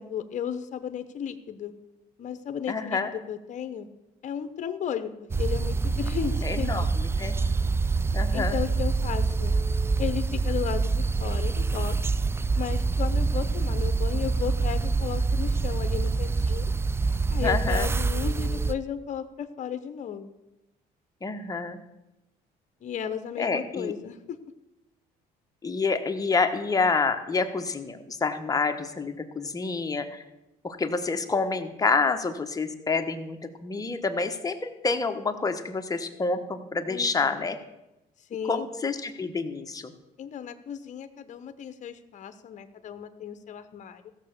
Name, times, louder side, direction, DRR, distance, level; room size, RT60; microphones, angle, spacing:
voice 1, 0.0-1.7 2.2-3.9 4.2-6.7 8.3-9.6 10.0-12.0 12.5-16.7 17.3-20.3 22.8-24.4 36.9-37.5 38.3-38.7 40.2-44.1, left 8 dB, 45° left, 10 dB, 0.9 m, -34 dB
voice 2, 2.7-3.1 6.4-7.4 8.1-8.6 17.4-17.9 21.2-21.8 23.4-23.9 25.6-30.2 30.6-37.6 38.5-39.9, left 4 dB, 20° left, 6 dB, 1.2 m, -28 dB
sound 1, 5.3-18.7, right 4 dB, 15° right, 0.3 m, -26 dB
15.0 x 6.9 x 6.7 m, 0.96 s
cardioid pair, 110°, 17 cm